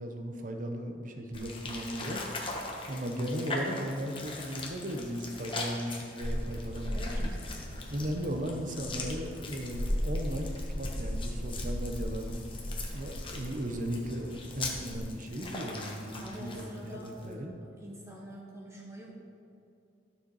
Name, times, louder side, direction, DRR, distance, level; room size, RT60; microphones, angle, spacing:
voice 1, 0.0-2.2 2.9-7.3 7.9-12.4 12.9-17.6, equal, 50° right, 4 dB, 1.0 m, -36 dB
sound 1, 1.3-17.3, left 2 dB, 30° left, 1.3 m, -41 dB
sound 2, 6.2-15.0, equal, 65° right, 2.7 m, -37 dB
voice 2, 6.9-7.3 16.2-17.5 17.8-19.1, equal, 15° right, -4 dB, 1.5 m, -45 dB
12.5 x 6.8 x 4.8 m, 2.6 s
head